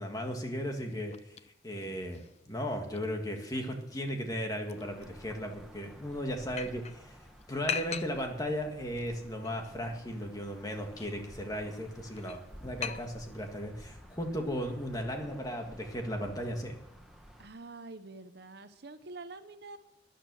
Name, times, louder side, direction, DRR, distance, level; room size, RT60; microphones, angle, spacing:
voice 1, 0.0-1.4 1.6-7.1 7.5-16.8, equal, 20° left, 3 dB, 1.8 m, -36 dB
sound 1, 0.7-13.6, left 7 dB, 35° left, 0.5 m, -45 dB
sound 2, 4.8-17.5, equal, ahead, 1.3 m, -53 dB
voice 2, 17.4-19.8, right 3 dB, 60° right, 10 dB, 0.9 m, -46 dB
13.5 x 10.0 x 6.3 m, 0.79 s
head